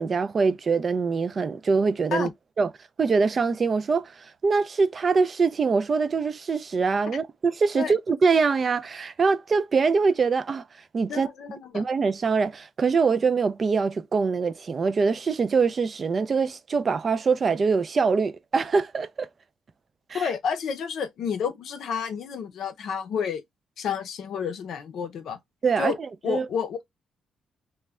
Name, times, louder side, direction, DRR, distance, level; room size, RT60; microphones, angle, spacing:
voice 1, 0.0-2.3 2.6-2.7 3.0-10.6 10.9-11.3 11.7-19.3 20.1-20.3 25.6-25.9 26.3-26.5, right 4 dB, 40° right, 0.3 m, -23 dB
voice 2, 11.1-11.8 20.1-23.4 23.8-25.4 25.8-26.0 26.2-26.8, left 7 dB, 70° left, 0.6 m, -30 dB
2.2 x 2.1 x 3.5 m
cardioid pair, 100°, 0 cm